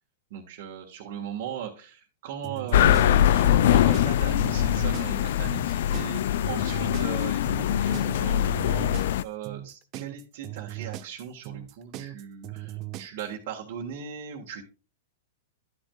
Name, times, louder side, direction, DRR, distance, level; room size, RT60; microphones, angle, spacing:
voice 1, 0.3-14.6, right 8 dB, 55° right, -1 dB, 1.5 m, -38 dB
sound 1, 2.4-13.3, right 14 dB, 40° right, 0.8 m, -38 dB
sound 2, 2.7-9.2, left 11 dB, 65° left, 0.4 m, -23 dB
11.0 x 8.9 x 2.3 m, 0.35 s
hypercardioid pair, 110°, 0 cm